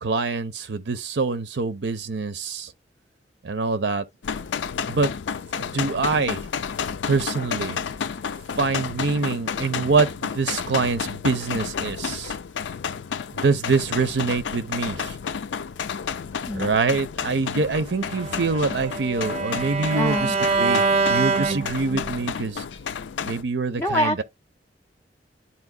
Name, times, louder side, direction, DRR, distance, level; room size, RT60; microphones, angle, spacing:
voice 1, 0.0-2.7 3.4-4.0 4.9-5.1 5.6-6.4 7.0-7.8 8.6-12.3 13.3-15.2 16.5-22.6 23.2-24.2, right 4 dB, 75° right, 0.6 m, -25 dB
sound 1, 4.2-23.4, left 6 dB, 80° left, 0.4 m, -31 dB
voice 2, 16.5-16.8 19.9-20.4 23.8-24.2, left 1 dB, 15° left, 0.3 m, -25 dB
Bowed string instrument, 18.1-22.3, right 4 dB, 35° right, 0.5 m, -25 dB
11.0 x 4.3 x 2.3 m
head